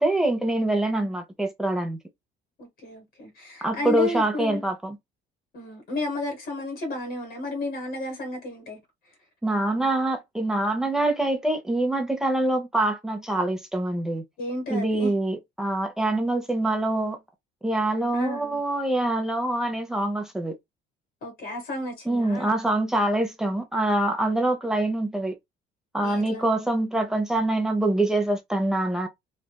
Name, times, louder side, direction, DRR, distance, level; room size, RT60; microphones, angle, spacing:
voice 1, 0.0-2.0 3.6-5.0 9.4-14.2 14.7-17.2 17.6-20.5 22.1-25.4 25.9-29.1, right 1 dB, 5° right, 0.8 m, -25 dB
voice 2, 2.6-4.6 5.5-8.8 14.4-15.1 18.1-18.6 21.2-22.6 26.0-26.5, left 1 dB, 55° left, 1.3 m, -32 dB
3.4 x 2.5 x 2.3 m
cardioid pair, 140°, 19 cm